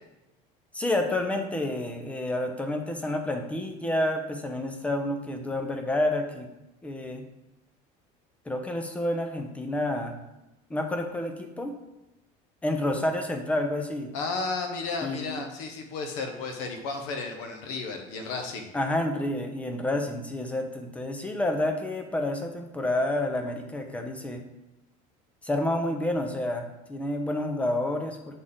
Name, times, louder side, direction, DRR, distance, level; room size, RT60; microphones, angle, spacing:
voice 1, 0.7-6.5 6.8-7.2 8.5-10.1 10.7-11.7 12.6-14.1 15.0-15.4 18.7-24.4 25.4-28.4, left 1 dB, 10° left, 5 dB, 0.6 m, -29 dB
voice 2, 14.1-18.7, left 4 dB, 85° left, 4 dB, 1.1 m, -33 dB
6.2 x 4.2 x 3.7 m, 0.98 s
cardioid pair, 160°, 16 cm